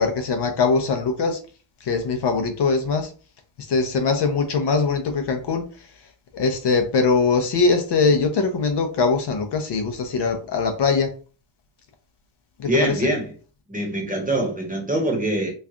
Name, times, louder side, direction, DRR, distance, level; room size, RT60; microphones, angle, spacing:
voice 1, 0.0-1.4 1.8-3.1 3.7-5.6 6.3-11.1 12.6-13.0, left 4 dB, 55° left, 0.7 m, -21 dB
voice 2, 12.6-13.3 13.7-15.5, right 1 dB, 15° right, 1.1 m, -24 dB
3.2 x 2.3 x 3.7 m
cardioid pair, 140°, 49 cm